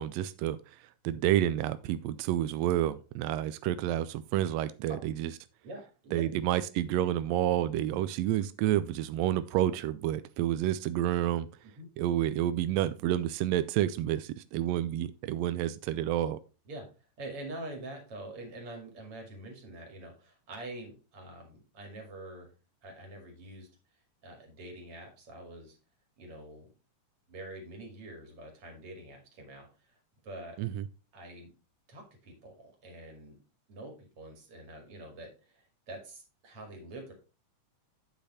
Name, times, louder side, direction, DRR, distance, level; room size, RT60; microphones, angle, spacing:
voice 1, 0.0-5.3 6.1-11.5 12.0-16.4 30.6-30.8, right 12 dB, 85° right, 14 dB, 1.5 m, -29 dB
voice 2, 5.6-6.2 11.8-11.9 16.7-16.9 17.2-22.5 22.8-23.7 24.2-25.8 26.2-26.7 27.3-30.6 31.1-31.5 31.9-33.4 33.7-37.1, right 1 dB, 50° right, 2 dB, 3.1 m, -45 dB
8.9 x 5.2 x 4.2 m, 0.32 s
omnidirectional pair, 3.5 m